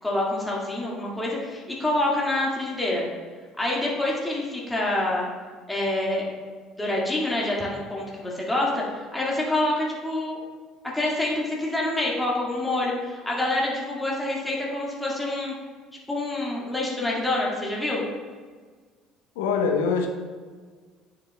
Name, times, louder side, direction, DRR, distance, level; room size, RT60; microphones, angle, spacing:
voice 1, 0.0-3.1 3.6-5.3 5.7-6.3 6.8-10.4 10.9-15.5 16.1-18.1, left 1 dB, 10° left, -4 dB, 1.8 m, -26 dB
voice 2, 19.4-20.1, left 5 dB, 65° left, 3 dB, 0.7 m, -23 dB
9.3 x 6.8 x 2.2 m, 1.5 s
figure-of-eight pair, 60°, 0 cm